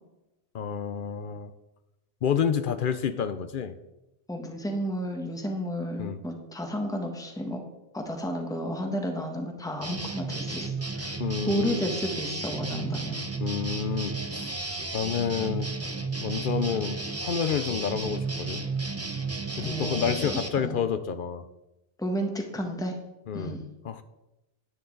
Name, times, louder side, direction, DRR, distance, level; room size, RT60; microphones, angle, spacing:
voice 1, 0.5-1.5 2.2-3.7 6.0-6.2 11.2-11.8 13.4-14.5 14.9-15.7 16.2-18.6 19.6-21.4 23.3-23.6 23.8-24.0, left 7 dB, 60° left, 10 dB, 0.7 m, -29 dB
voice 2, 4.3-7.6 7.9-11.2 11.5-13.2 19.6-20.8 22.0-22.9 23.3-23.7, equal, 5° left, 3 dB, 1.2 m, -32 dB
sound 1, 9.8-20.5, right 3 dB, 15° right, 0.7 m, -33 dB
10.5 x 9.4 x 3.9 m, 0.98 s
omnidirectional pair, 1.1 m